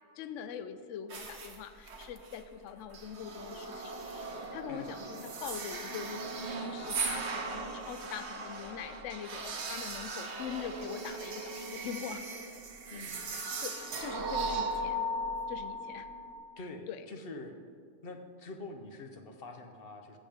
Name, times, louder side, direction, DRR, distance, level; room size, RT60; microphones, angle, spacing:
voice 1, 0.2-12.2 13.3-15.1 15.5-16.1 16.9-17.0, left 8 dB, 70° left, 10 dB, 0.9 m, -43 dB
sound 1, 1.1-1.6 1.9-2.4 2.9-16.3, right 2 dB, 60° right, 1.3 m, -38 dB
voice 2, 16.6-17.6 18.0-20.2, left 2 dB, 50° left, 5 dB, 1.0 m, -45 dB
15.0 x 7.2 x 3.6 m, 2.1 s
omnidirectional pair, 1.4 m